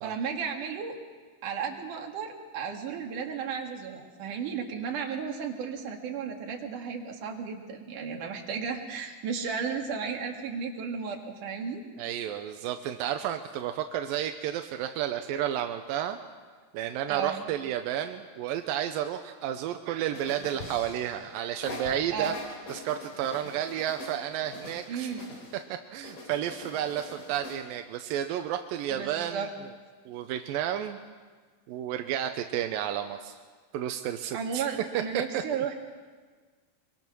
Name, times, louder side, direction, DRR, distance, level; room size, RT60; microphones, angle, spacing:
voice 1, 0.0-1.0 1.4-11.8 17.1-17.4 22.1-22.4 24.9-25.3 28.9-29.5 34.3-35.7, right 6 dB, 65° right, 2 dB, 3.5 m, -34 dB
voice 2, 12.0-16.2 16.7-22.3 22.7-25.1 25.9-29.5 30.1-31.0 31.7-33.3 33.7-34.6 34.9-35.0 35.3-35.4, right 10 dB, 90° right, 7 dB, 2.6 m, -31 dB
sound 1, 20.1-21.3 21.6-25.6 26.0-27.6, left 2 dB, 55° left, 5.0 m, -43 dB
24.0 x 23.5 x 6.2 m, 1.5 s
omnidirectional pair, 4.0 m